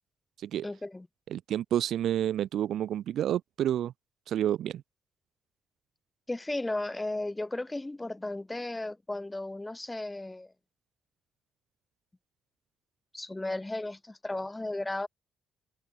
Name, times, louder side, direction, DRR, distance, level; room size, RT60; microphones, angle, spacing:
voice 1, 0.6-1.1 6.3-10.5 13.1-15.1, left 2 dB, 15° left, 7.2 m, -35 dB
voice 2, 1.3-3.9 4.3-4.8, right 11 dB, 70° right, 3.5 m, -29 dB
open air
cardioid pair, 90°, 0 cm